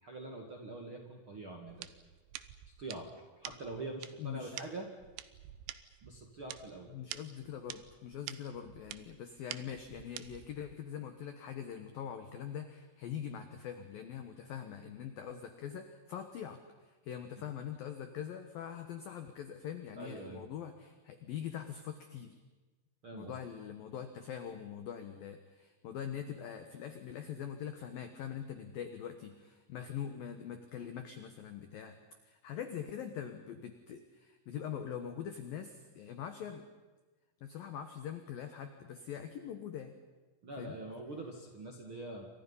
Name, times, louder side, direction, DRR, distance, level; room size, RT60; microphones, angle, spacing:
voice 1, 0.0-1.9 2.8-3.1 3.3-4.9 6.0-6.9 20.0-20.4 23.0-23.4 40.4-42.3, right 2 dB, 55° right, 1 dB, 1.4 m, -44 dB
sound 1, 1.7-10.7, right 13 dB, 80° right, 2.5 m, -48 dB
voice 2, 4.2-4.6 6.9-22.3 23.1-31.9 32.2-36.7 37.4-39.9 40.6-40.7, left 9 dB, 75° left, 7 dB, 2.2 m, -43 dB
29.5 x 25.5 x 5.6 m, 1.2 s
omnidirectional pair, 6.0 m